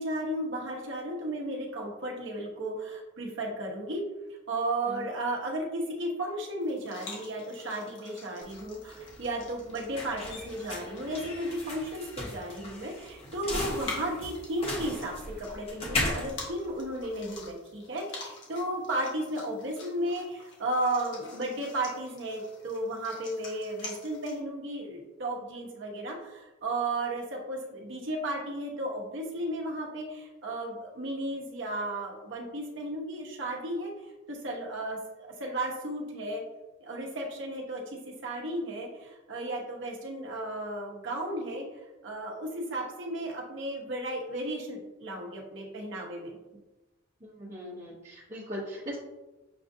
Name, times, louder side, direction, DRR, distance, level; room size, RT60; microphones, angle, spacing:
voice 1, 0.0-4.0 4.5-33.9 34.3-36.4 36.8-41.7 42.0-46.4, right 1 dB, 65° right, -1 dB, 0.9 m, -34 dB
sound 1, 6.6-24.4, left 3 dB, 65° left, 1.2 m, -47 dB
sound 2, 8.5-17.5, left 2 dB, 30° left, 1.0 m, -37 dB
voice 2, 47.2-49.0, equal, 40° right, -7 dB, 1.0 m, -39 dB
6.9 x 2.5 x 2.6 m, 1.1 s
head